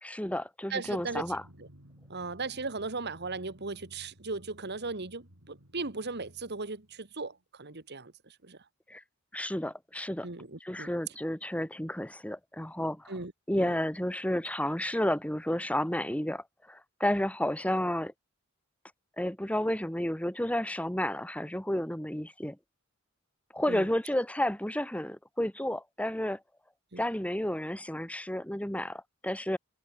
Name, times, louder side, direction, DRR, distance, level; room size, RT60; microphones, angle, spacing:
voice 1, 0.0-1.4 8.9-9.0 9.3-10.3 10.6-13.1 13.5-18.1 19.2-22.6 23.5-26.4 27.0-29.6, left 1 dB, 5° left, 2.7 m, -31 dB
voice 2, 0.7-1.2 1.6-1.7 2.1-8.1 8.4-8.6 10.2-10.9 13.1-13.3 13.6-13.7 23.7-23.9 26.9-27.0, right 3 dB, 55° right, 2.0 m, -37 dB
Drum, 0.8-7.3, equal, 85° right, 8.0 m, -56 dB
head